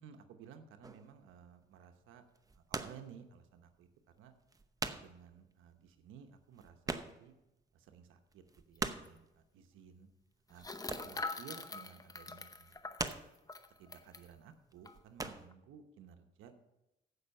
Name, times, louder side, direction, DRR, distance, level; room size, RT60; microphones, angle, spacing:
voice 1, 0.0-2.2 2.6-3.9 4.2-4.3 4.8-7.3 7.7-10.1 10.5-12.8 13.8-16.6, right 7 dB, 90° right, 7 dB, 1.0 m, -56 dB
sound 1, 0.8-1.2 2.3-3.1 3.5-3.6 4.2-4.3 4.4-5.2 5.5-5.6 5.9-6.0 6.2-7.5 7.8-7.9 8.3-9.2 10.5-11.3 11.6-12.0 12.6-13.5 14.1-14.4 14.7-15.5, right 3 dB, 20° right, 0.8 m, -41 dB
sound 2, 8.8-8.9 9.0-9.2 10.6-14.3 14.9-15.0 15.2-15.5, left 3 dB, 20° left, 0.8 m, -44 dB
15.0 x 5.6 x 5.5 m, 0.91 s
cardioid pair, 90°, 20 cm